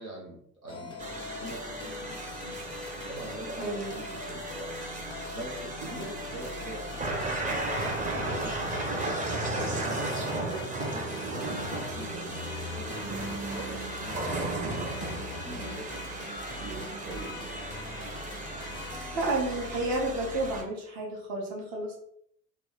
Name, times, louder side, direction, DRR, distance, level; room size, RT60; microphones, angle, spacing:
voice 1, 0.0-2.6 3.1-4.8 5.0-9.1 9.6-17.6, right 1 dB, 90° right, -2 dB, 0.6 m, -44 dB
sound 1, 0.7-19.8, left 4 dB, 15° left, 0.3 m, -44 dB
sound 2, 1.0-20.6, right 2 dB, 20° right, 0.6 m, -35 dB
voice 2, 3.6-4.0 18.6-18.9 19.1-22.0, right 2 dB, 55° right, 0 dB, 1.1 m, -31 dB
2.9 x 2.1 x 3.7 m, 0.68 s
figure-of-eight pair, 55°, 41 cm